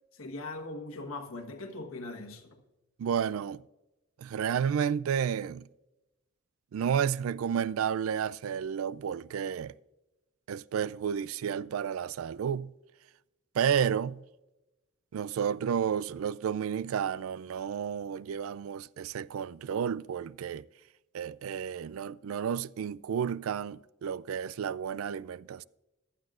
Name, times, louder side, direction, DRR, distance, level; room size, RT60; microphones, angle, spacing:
voice 1, 0.1-2.6, left 2 dB, 80° left, 1.3 m, -40 dB
voice 2, 3.0-3.6 4.2-5.7 6.7-9.7 10.5-12.7 13.5-14.2 15.1-20.7 21.1-25.6, right 8 dB, 75° right, 0.3 m, -31 dB
15.5 x 11.5 x 2.5 m
head